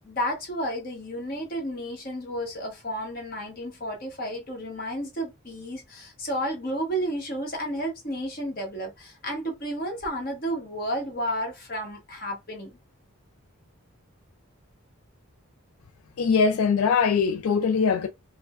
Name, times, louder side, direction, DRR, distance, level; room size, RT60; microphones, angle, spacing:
voice 1, 0.0-12.8, equal, 45° left, 1.2 m, -32 dB
voice 2, 16.2-18.1, left 5 dB, 80° left, 0.4 m, -22 dB
4.6 x 2.1 x 2.4 m
head